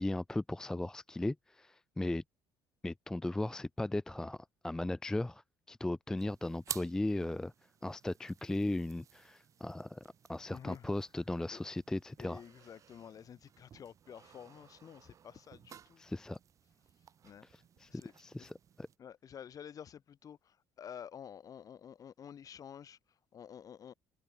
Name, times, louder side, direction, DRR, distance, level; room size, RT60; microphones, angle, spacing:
voice 1, 0.0-2.2 2.8-5.4 5.7-7.5 7.8-10.0 10.3-12.4 16.0-16.4 17.8-18.9, left 2 dB, 5° left, 0.3 m, -37 dB
sound 1, 6.2-19.0, right 8 dB, 35° right, 0.6 m, -53 dB
voice 2, 10.5-10.9 11.5-11.6 12.2-16.0 17.2-18.1 18.4-18.5 19.0-23.9, left 8 dB, 40° left, 3.7 m, -50 dB
cardioid pair, 145°, 9 cm